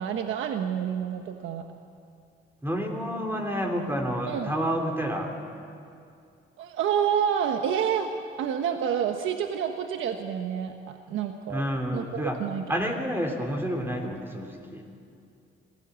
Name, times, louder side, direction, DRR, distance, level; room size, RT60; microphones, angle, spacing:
voice 1, 0.0-1.6 4.3-4.5 6.6-8.1 8.4-11.7 11.9-12.6, right 8 dB, 80° right, 5 dB, 1.2 m, -28 dB
voice 2, 2.6-5.3 11.5-12.4 12.7-14.8, equal, 10° right, 2 dB, 3.3 m, -29 dB
26.0 x 16.5 x 8.2 m, 2.5 s
cardioid pair, 90°, 20 cm